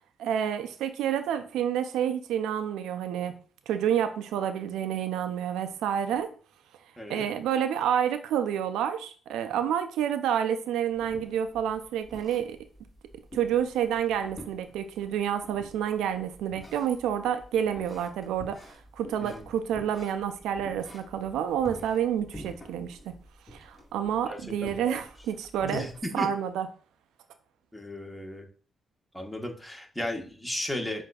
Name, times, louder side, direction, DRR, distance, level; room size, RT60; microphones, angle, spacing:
voice 1, 0.2-3.4 3.7-6.3 7.1-12.6 13.3-23.1 23.5-25.9 26.1-26.7, right 9 dB, 90° right, 0.3 m, -29 dB
sound 1, 10.9-26.0, equal, 25° left, 1.6 m, -49 dB
voice 2, 24.3-25.0 25.6-26.3 27.7-28.4 29.1-31.1, left 1 dB, 10° left, 1.2 m, -35 dB
7.4 x 2.6 x 2.3 m
supercardioid pair, 60°, 0 cm